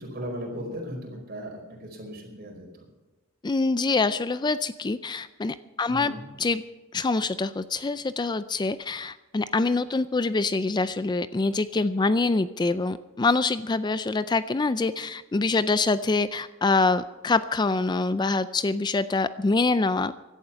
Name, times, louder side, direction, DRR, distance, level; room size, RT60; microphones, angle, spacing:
voice 1, 0.0-2.7 5.9-6.2, equal, 50° right, 1 dB, 4.9 m, -37 dB
voice 2, 3.4-6.1 6.4-6.6 6.9-20.1, left 3 dB, 20° left, 14 dB, 0.4 m, -25 dB
16.5 x 11.5 x 5.8 m, 1.1 s
head